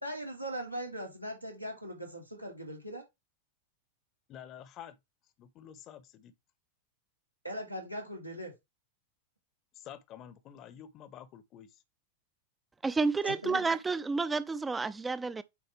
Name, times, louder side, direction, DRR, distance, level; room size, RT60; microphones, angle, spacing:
voice 1, 0.0-3.0 7.4-8.5 13.2-13.7, equal, 90° right, 2.3 m, -40 dB
voice 2, 4.3-5.0 5.4-6.3 9.7-11.8, left 10 dB, 35° left, 0.9 m, -49 dB
voice 3, 12.8-15.4, right 4 dB, 10° right, 0.5 m, -30 dB
8.4 x 4.2 x 3.4 m
figure-of-eight pair, 90°, 0 cm